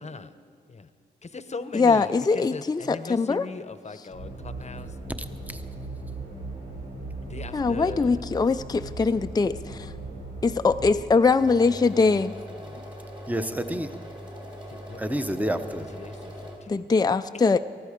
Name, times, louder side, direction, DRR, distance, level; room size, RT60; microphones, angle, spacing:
voice 1, 0.0-0.4 0.7-0.9 1.2-5.0 7.2-8.2 12.0-12.9 14.7-15.5 15.9-16.9, left 4 dB, 40° left, 0.8 m, -40 dB
voice 2, 1.7-3.4 7.5-9.9 10.4-12.3 16.7-17.6, left 4 dB, 20° left, 0.4 m, -22 dB
sound 1, 4.1-11.0, right 2 dB, 90° right, 4.1 m, -38 dB
voice 3, 5.2-5.6 13.3-13.9 15.0-15.9, right 1 dB, 10° right, 0.9 m, -29 dB
sound 2, 11.4-16.6, equal, 25° right, 3.6 m, -41 dB
19.5 x 13.5 x 5.1 m
cardioid pair, 55°, 18 cm